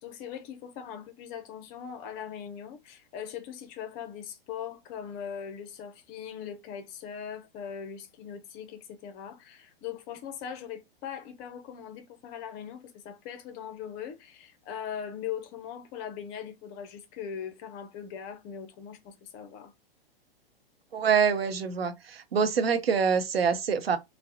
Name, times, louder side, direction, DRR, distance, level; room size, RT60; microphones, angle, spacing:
voice 1, 0.0-19.7, left 8 dB, 30° left, 0.5 m, -40 dB
voice 2, 20.9-24.0, right 6 dB, 80° right, 0.7 m, -25 dB
3.5 x 2.1 x 2.7 m
figure-of-eight pair, 110°, 30 cm